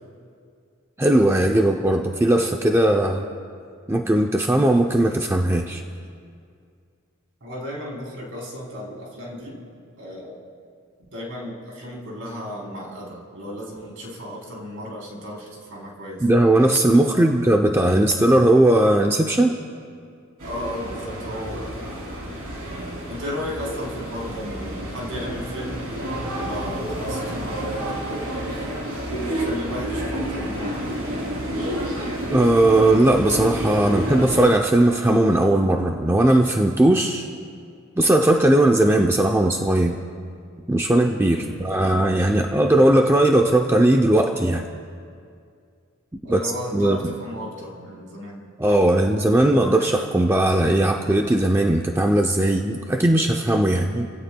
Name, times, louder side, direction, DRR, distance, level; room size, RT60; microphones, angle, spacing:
voice 1, 1.0-3.3 3.9-5.8 16.2-19.6 32.3-37.3 38.0-40.0 40.7-44.7 46.3-47.0 48.6-54.1, right 1 dB, 10° right, 2 dB, 0.5 m, -18 dB
voice 2, 7.4-9.6 10.0-10.4 11.1-16.2 17.1-17.3 20.4-21.7 22.7-25.8 26.4-28.0 28.5-28.7 29.1-30.8 41.3-41.7 46.2-48.4, equal, 60° right, -3 dB, 3.5 m, -34 dB
sound 1, 20.4-34.5, right 1 dB, 80° right, 3.1 m, -30 dB
28.0 x 16.5 x 2.3 m, 2.3 s
head